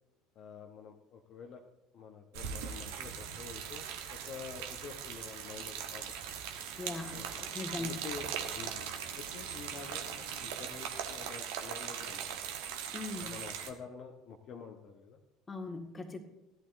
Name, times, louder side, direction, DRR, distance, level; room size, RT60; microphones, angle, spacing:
voice 1, 0.3-1.6 1.9-6.4 7.1-8.7 9.2-12.5 13.2-15.2, left 6 dB, 45° left, 2 dB, 1.1 m, -48 dB
sound 1, 2.3-13.7, right 8 dB, 60° right, 1.2 m, -40 dB
sound 2, 5.0-11.3, right 1 dB, 90° left, 2.2 m, -54 dB
voice 2, 6.8-7.9 12.9-13.3 15.5-16.2, left 3 dB, 20° left, 4 dB, 1.8 m, -40 dB
16.5 x 11.5 x 2.6 m, 1.0 s
figure-of-eight pair, 65°, 0 cm